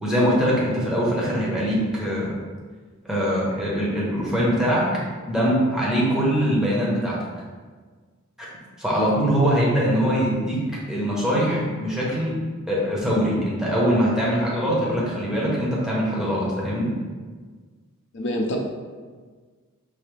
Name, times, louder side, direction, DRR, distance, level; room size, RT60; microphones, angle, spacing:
voice 1, 0.0-2.3 3.0-4.8 5.3-7.2 8.8-10.6 10.9-12.3 12.7-16.9, equal, 5° right, -6 dB, 1.0 m, -22 dB
voice 2, 18.1-18.6, left 1 dB, 55° left, 0 dB, 0.6 m, -26 dB
5.5 x 2.8 x 3.3 m, 1.5 s
head